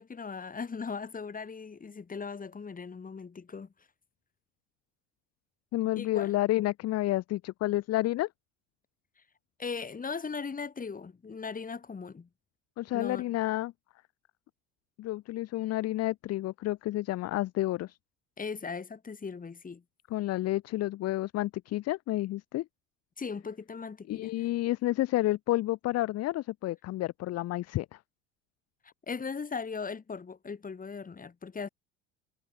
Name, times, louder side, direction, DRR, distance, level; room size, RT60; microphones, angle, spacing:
voice 1, 0.0-3.7 5.9-6.3 9.6-12.3 12.9-13.3 18.4-19.8 23.2-24.5 29.1-31.7, left 5 dB, 25° left, 3.8 m, -38 dB
voice 2, 5.7-8.3 12.8-13.7 15.0-18.0 20.1-22.6 24.1-28.0, left 16 dB, 45° left, 1.0 m, -30 dB
hypercardioid pair, 70°, 36 cm